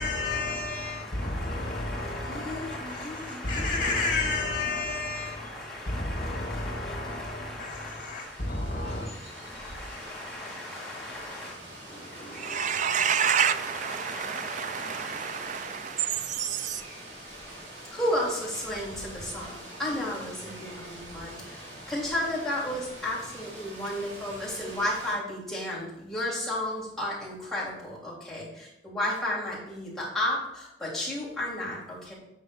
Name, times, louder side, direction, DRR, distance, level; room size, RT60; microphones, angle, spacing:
voice 1, 0.0-9.1, left 2 dB, 50° left, 2.0 m, -32 dB
voice 2, 0.9-3.9 5.1-8.5 8.8-11.5 11.8-13.4 13.9-15.8 17.9-32.1, left 1 dB, ahead, 3.0 m, -34 dB
voice 3, 2.7-3.1 10.2-10.5 12.0-16.8, right 8 dB, 45° right, 0.4 m, -29 dB
Rain, 8.2-25.1, right 1 dB, 80° right, 3.2 m, -44 dB
8.3 x 4.4 x 5.1 m
head